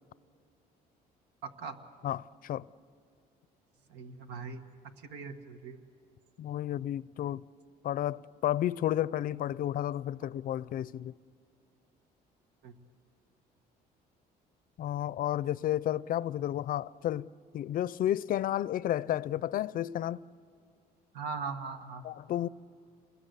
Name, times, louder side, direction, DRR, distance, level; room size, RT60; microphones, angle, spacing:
voice 1, 1.4-1.8 3.9-4.6 5.0-5.8 12.6-12.8 21.1-22.1, right 5 dB, 85° right, 1.6 m, -40 dB
voice 2, 2.0-2.7 6.4-7.4 7.8-11.1 14.8-17.3 17.5-20.2 22.0-22.5, left 12 dB, 55° left, 0.5 m, -32 dB
28.5 x 21.0 x 8.2 m
cardioid pair, 110°, 17 cm